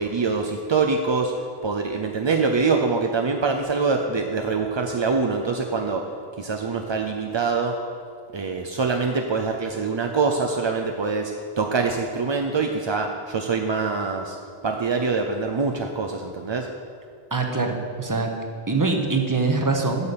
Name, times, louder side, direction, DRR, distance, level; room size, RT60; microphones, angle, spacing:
voice 1, 0.0-1.3 1.6-6.1 6.4-7.8 8.3-14.4 14.6-16.7, right 4 dB, 45° right, 3 dB, 0.3 m, -24 dB
voice 2, 17.3-18.3 18.7-20.1, right 3 dB, 20° right, 2 dB, 0.8 m, -23 dB
8.1 x 5.7 x 6.9 m, 2.3 s
omnidirectional pair, 1.0 m